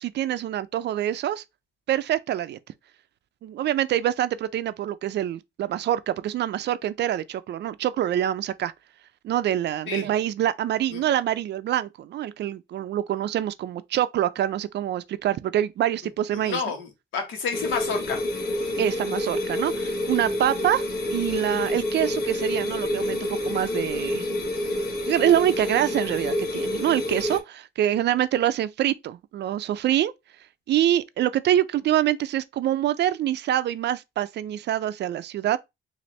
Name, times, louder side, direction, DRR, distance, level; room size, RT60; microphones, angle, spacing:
voice 1, 0.0-1.4 1.9-2.6 3.4-8.7 9.2-16.6 18.8-20.8 21.1-24.2 24.6-24.8 25.1-30.1 30.7-35.6, right 11 dB, 60° right, 0.4 m, -25 dB
voice 2, 16.3-18.2, left 5 dB, 90° left, 1.2 m, -30 dB
sound 1, 17.5-27.4, left 1 dB, 55° left, 1.3 m, -28 dB
4.1 x 2.6 x 3.1 m
cardioid pair, 90°, 20 cm